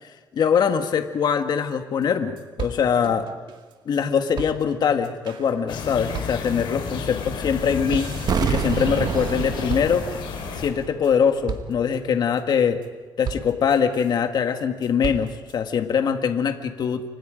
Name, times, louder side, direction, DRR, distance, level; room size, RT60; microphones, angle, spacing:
voice 1, 0.3-3.3 3.9-8.1 8.4-10.1 10.5-12.8 13.2-17.0, left 7 dB, 55° left, 7 dB, 1.7 m, -22 dB
sound 1, 1.7-1.8 2.0-2.1 2.4-4.0 4.4-9.4 9.7-10.4 10.8-11.1 11.5-12.0 12.4-12.9 13.2-14.2 14.6-15.6, right 7 dB, 70° right, 2.1 m, -36 dB
sound 2, 5.7-10.7, left 6 dB, 75° left, 4.7 m, -32 dB
sound 3, 8.3-11.2 11.4-11.5, right 7 dB, 50° right, 1.0 m, -28 dB
29.5 x 25.0 x 5.2 m, 1.3 s
cardioid pair, 110°, 8 cm